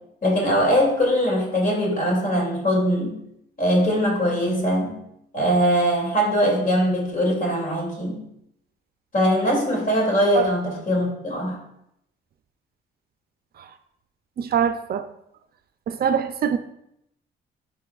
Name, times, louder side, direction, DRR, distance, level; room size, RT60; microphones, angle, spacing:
voice 1, 0.2-3.1 3.6-5.0 5.3-8.2 9.1-11.6, equal, 45° left, 2.7 m, -21 dB
voice 2, 14.4-15.1 15.9-16.6, right 8 dB, 50° right, 0.4 m, -23 dB
12.0 x 4.7 x 2.4 m
cardioid pair, 90°, 20 cm